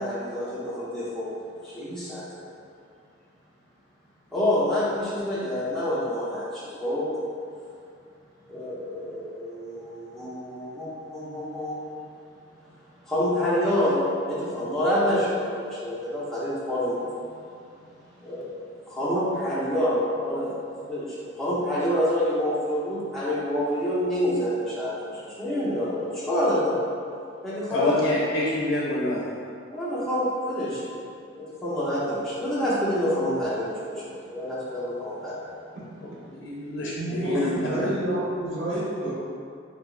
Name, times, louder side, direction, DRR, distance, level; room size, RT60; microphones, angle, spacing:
voice 1, 0.0-1.4 1.6-2.4 4.3-7.1 8.5-11.9 13.0-17.3 18.2-18.6 18.9-26.9 27.4-27.9 29.7-31.0 31.4-35.4, equal, ahead, -10 dB, 0.7 m, -27 dB
voice 2, 27.7-29.2 36.0-37.9, left 1 dB, 80° left, -5 dB, 0.5 m, -27 dB
voice 3, 37.0-39.1, right 1 dB, 80° right, -9 dB, 1.2 m, -29 dB
3.4 x 2.9 x 2.4 m, 2.4 s
head